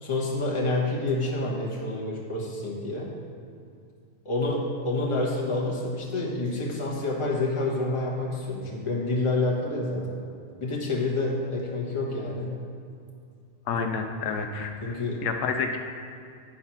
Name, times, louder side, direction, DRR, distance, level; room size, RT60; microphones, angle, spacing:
voice 1, 0.0-3.1 4.2-10.2 10.6-12.6 13.7-13.9 14.8-15.3, left 2 dB, 20° left, -4 dB, 1.3 m, -28 dB
voice 2, 13.7-15.8, left 5 dB, 85° left, 5 dB, 1.2 m, -30 dB
10.5 x 4.8 x 5.8 m, 2.4 s
omnidirectional pair, 1.7 m